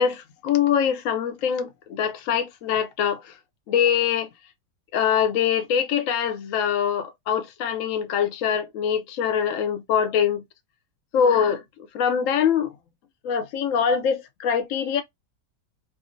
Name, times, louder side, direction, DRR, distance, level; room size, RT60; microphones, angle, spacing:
voice 1, 0.0-3.2 3.7-4.3 4.9-10.4 11.1-11.6 11.9-12.7 13.2-15.0, left 8 dB, 65° left, 0.8 m, -23 dB
3.5 x 2.1 x 2.5 m
omnidirectional pair, 1.8 m